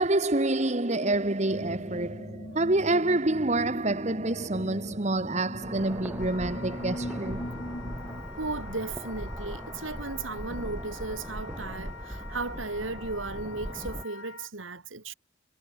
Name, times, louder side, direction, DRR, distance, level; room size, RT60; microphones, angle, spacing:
voice 1, 0.0-7.4, right 2 dB, 35° right, 1.4 m, -27 dB
sound 1, 1.5-8.2, equal, 35° left, 4.0 m, -40 dB
sound 2, 5.6-14.1, equal, 10° right, 0.8 m, -39 dB
Wind instrument woodwind instrument, 6.2-14.5, left 4 dB, 80° left, 2.9 m, -46 dB
voice 2, 8.4-15.1, right 3 dB, 80° right, 2.8 m, -35 dB
head